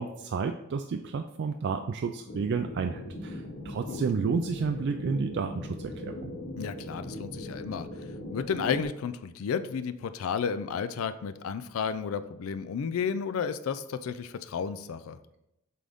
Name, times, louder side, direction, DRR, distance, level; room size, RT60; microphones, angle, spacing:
voice 1, 0.0-6.3, right 5 dB, 55° right, 6 dB, 0.3 m, -31 dB
sound 1, 2.3-8.8, left 1 dB, 50° left, 0.8 m, -39 dB
voice 2, 6.6-7.9 8.3-15.2, left 6 dB, 75° left, 12 dB, 0.4 m, -32 dB
7.6 x 3.8 x 3.5 m, 0.85 s
head